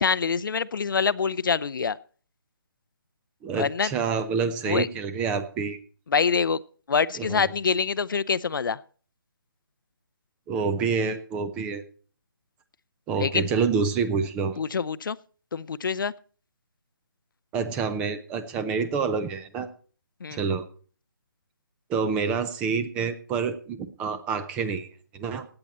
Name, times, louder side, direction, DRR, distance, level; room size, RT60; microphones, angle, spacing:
voice 1, 0.0-2.0 3.5-3.9 4.7-4.9 6.1-6.6 6.9-8.8 13.2-13.4 14.6-15.2 15.5-16.1 20.2-20.4, left 6 dB, 65° left, 17 dB, 0.6 m, -25 dB
voice 2, 3.4-5.8 7.2-7.4 10.5-11.8 13.1-14.6 17.5-19.7 20.3-20.6 21.9-25.5, right 5 dB, 10° right, 12 dB, 0.5 m, -27 dB
16.5 x 8.8 x 4.3 m, 0.41 s
hypercardioid pair, 160°, 12 cm